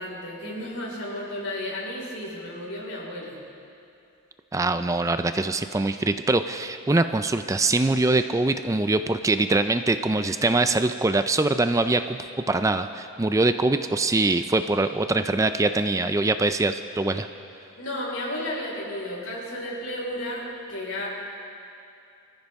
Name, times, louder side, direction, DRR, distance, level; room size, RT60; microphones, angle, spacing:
voice 1, 0.0-3.4 17.8-21.1, left 1 dB, 80° left, -4 dB, 4.7 m, -33 dB
voice 2, 4.5-12.2 12.5-17.3, right 2 dB, 15° right, 9 dB, 0.3 m, -23 dB
25.5 x 14.5 x 3.6 m, 2.6 s
head